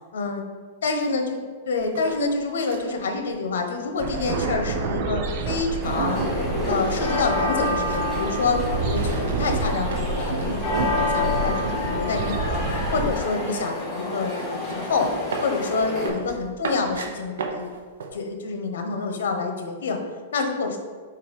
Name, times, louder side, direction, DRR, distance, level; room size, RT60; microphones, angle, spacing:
voice 1, 0.1-0.5 0.8-6.2 6.7-15.1 15.4-17.7 18.1-20.0 20.3-20.8, left 4 dB, 80° left, 5 dB, 1.0 m, -27 dB
sound 1, 1.7-10.6 10.9-11.8 12.0-18.2, right 4 dB, 80° right, 0.8 m, -38 dB
sound 2, 4.0-13.1, right 4 dB, 45° right, 0.6 m, -28 dB
sound 3, 5.8-16.1, left 2 dB, 10° left, 1.4 m, -28 dB
4.6 x 4.3 x 5.3 m, 1.5 s
hypercardioid pair, 155°, 0 cm